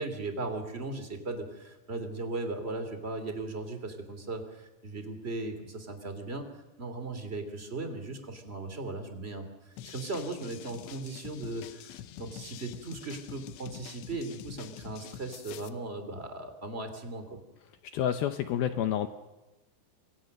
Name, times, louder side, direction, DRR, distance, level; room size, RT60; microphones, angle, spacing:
voice 1, 0.0-6.4 6.8-17.4, right 2 dB, 20° right, 8 dB, 2.2 m, -37 dB
sound 1, 9.8-15.7, left 11 dB, 90° left, 3.3 m, -46 dB
voice 2, 17.9-19.1, left 10 dB, 75° left, 9 dB, 2.5 m, -28 dB
26.5 x 24.5 x 6.6 m, 1.0 s
omnidirectional pair, 5.0 m